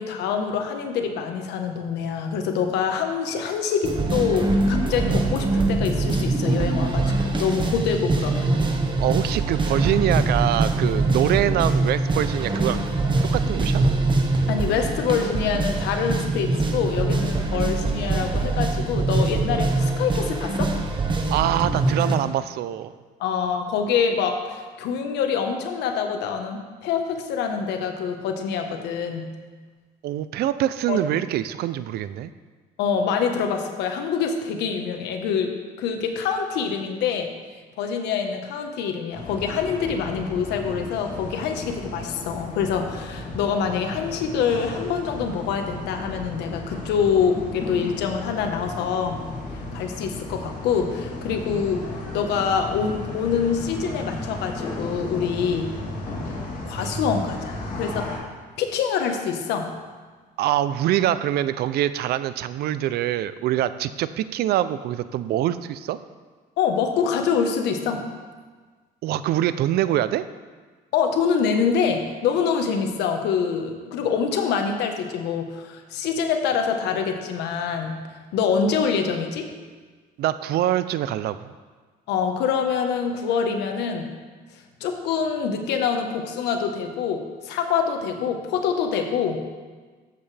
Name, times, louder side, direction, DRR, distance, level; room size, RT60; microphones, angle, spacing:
voice 1, 0.0-8.5 14.5-20.7 23.2-29.3 30.9-31.0 32.8-35.5 35.8-37.3 37.8-49.2 49.7-51.8 52.1-55.7 56.6-58.1 58.6-59.7 66.6-68.0 70.9-78.0 78.3-79.5 82.1-84.1 84.8-89.4, left 6 dB, 85° left, 4 dB, 1.3 m, -25 dB
sound 1, 3.8-22.2, right 2 dB, 30° right, 1.2 m, -23 dB
voice 2, 9.0-12.8 13.3-13.8 21.3-22.9 30.0-32.3 60.4-66.0 69.0-70.2 80.2-81.5, right 12 dB, 70° right, 14 dB, 0.5 m, -24 dB
sound 2, 39.1-58.2, left 2 dB, 50° left, 3.1 m, -34 dB
14.0 x 7.8 x 3.4 m, 1.4 s
cardioid pair, 110°, 17 cm